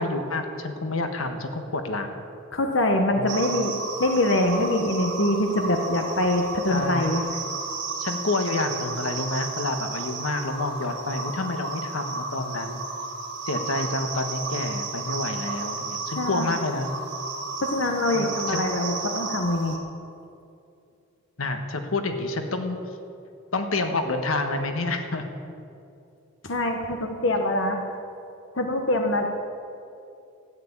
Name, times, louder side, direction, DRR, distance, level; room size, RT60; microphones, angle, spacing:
voice 1, 0.0-2.2 3.1-3.3 6.7-7.1 8.0-12.8 13.5-16.9 18.1-18.6 21.4-22.8 23.5-25.2, left 2 dB, 85° left, 6 dB, 1.4 m, -28 dB
voice 2, 2.5-3.7 4.0-7.2 16.2-16.5 17.6-19.8 26.4-27.8 28.5-29.3, left 1 dB, 65° left, 4 dB, 1.1 m, -24 dB
sound 1, 3.3-19.8, right 3 dB, 55° right, 2.2 m, -33 dB
14.0 x 9.4 x 8.7 m, 2.6 s
head